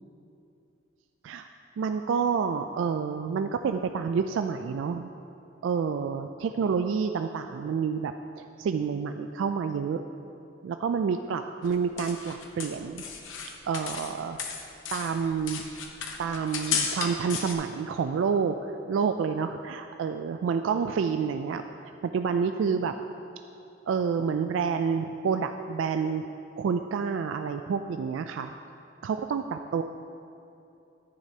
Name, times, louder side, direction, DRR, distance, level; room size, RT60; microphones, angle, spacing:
voice 1, 1.8-5.1 5.6-10.0 10.6-13.1 13.6-14.4 14.9-15.7 16.2-22.9 23.9-26.3 26.6-28.5 29.0-29.8, right 6 dB, 80° right, 7 dB, 0.3 m, -29 dB
sound 1, 11.6-14.1 14.4-17.5, left 6 dB, 85° left, 0.8 m, -34 dB
10.5 x 9.1 x 2.8 m, 2.7 s
head